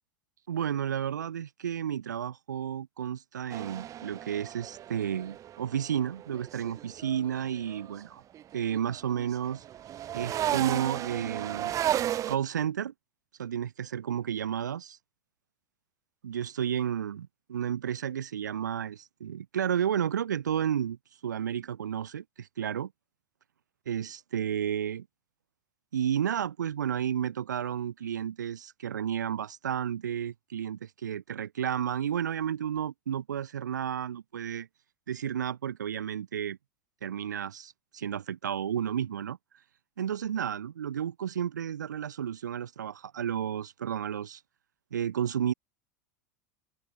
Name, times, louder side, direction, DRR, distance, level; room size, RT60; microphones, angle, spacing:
voice 1, 0.5-8.2 8.5-9.6 10.1-11.7 12.3-12.9 13.4-15.0 16.2-21.0 21.2-22.9 23.8-25.1 25.9-34.7 35.1-36.6 37.0-39.4 40.0-44.4 44.9-45.5, right 9 dB, 85° right, 1.7 m, -32 dB
sound 1, 3.5-8.0 8.3-12.4, right 12 dB, 35° right, 0.5 m, -34 dB
hypercardioid pair, 90°, 10 cm